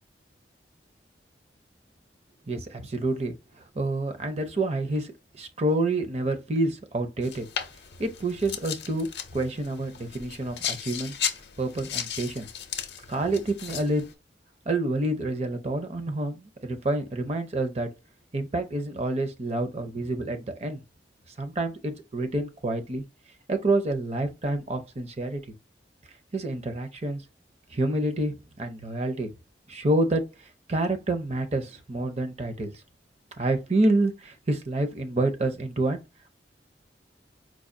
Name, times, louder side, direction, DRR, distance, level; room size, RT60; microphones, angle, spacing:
voice 1, 2.5-5.1 5.4-7.5 8.0-11.1 11.6-12.5 13.1-14.0 14.7-17.9 18.3-20.8 21.4-23.0 23.5-25.4 26.3-27.2 27.7-29.3 29.7-30.2 30.7-32.7 33.4-36.0, right 2 dB, 35° right, 0.5 m, -28 dB
sound 1, 7.2-14.1, left 8 dB, 70° left, 0.6 m, -36 dB
4.7 x 2.3 x 2.5 m
head